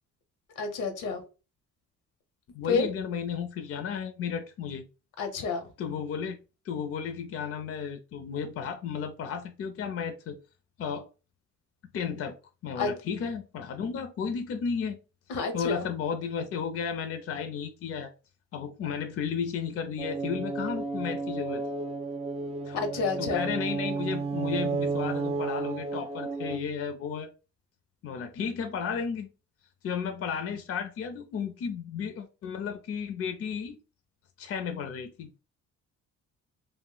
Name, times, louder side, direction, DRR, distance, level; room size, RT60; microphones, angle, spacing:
voice 1, 0.6-1.2 2.7-2.9 5.2-5.7 12.8-12.9 15.3-15.9 22.8-23.5, left 5 dB, 85° left, 0.8 m, -29 dB
voice 2, 2.5-4.9 5.8-6.4 6.7-10.4 10.8-11.1 11.9-12.4 12.6-15.0 15.5-18.1 18.5-21.6 22.7-22.9 23.2-27.3 28.0-29.3 29.8-33.8 34.4-35.3, left 6 dB, 50° left, 0.5 m, -33 dB
sound 1, 20.0-26.6, right 4 dB, 20° right, 0.3 m, -32 dB
2.5 x 2.1 x 3.7 m
cardioid pair, 90°, 30 cm